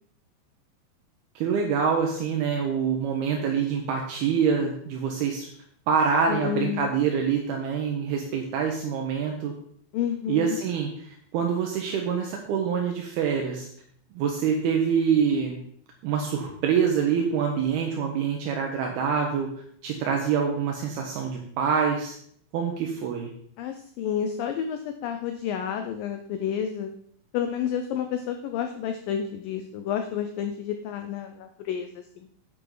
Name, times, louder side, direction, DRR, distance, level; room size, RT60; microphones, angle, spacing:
voice 1, 1.4-5.5 5.9-9.5 10.3-13.7 14.2-15.6 16.0-19.5 19.8-22.2 22.5-23.3, right 6 dB, 75° right, 2 dB, 2.9 m, -25 dB
voice 2, 6.3-6.9 9.9-10.6 23.6-26.9 27.3-32.3, left 8 dB, 80° left, 6 dB, 2.1 m, -30 dB
9.6 x 9.5 x 3.9 m, 0.63 s
omnidirectional pair, 4.7 m